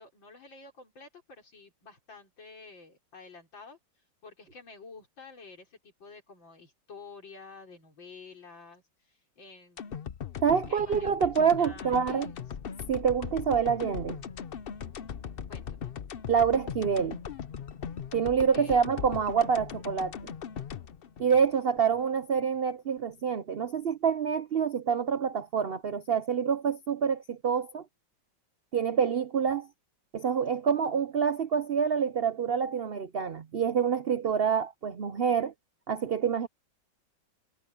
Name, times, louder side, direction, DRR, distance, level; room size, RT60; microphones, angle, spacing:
voice 1, 0.0-3.8 4.2-10.1 10.7-12.4 15.5-15.9 18.5-18.8, left 4 dB, 90° left, 5.0 m, -50 dB
sound 1, 9.8-22.0 22.4-22.5, left 8 dB, 60° left, 0.5 m, -39 dB
voice 2, 10.4-12.3 12.9-14.2 16.3-17.2 18.1-20.1 21.2-27.8 28.7-29.7 30.1-35.5 35.9-36.5, right 7 dB, 85° right, 0.5 m, -27 dB
omnidirectional pair, 2.0 m